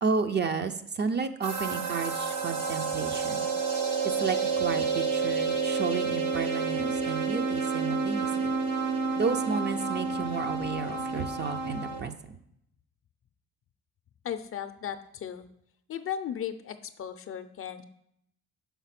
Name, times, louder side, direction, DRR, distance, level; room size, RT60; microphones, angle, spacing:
voice 1, 0.0-3.5 4.0-8.5 9.2-12.4, right 5 dB, 35° right, 9 dB, 0.5 m, -32 dB
sound 1, 1.4-12.0, right 4 dB, 80° right, 1.1 m, -29 dB
voice 2, 14.2-15.4 15.9-17.8, left 9 dB, 45° left, 11 dB, 0.5 m, -36 dB
5.7 x 4.0 x 5.8 m, 0.74 s
cardioid pair, 90°, 30 cm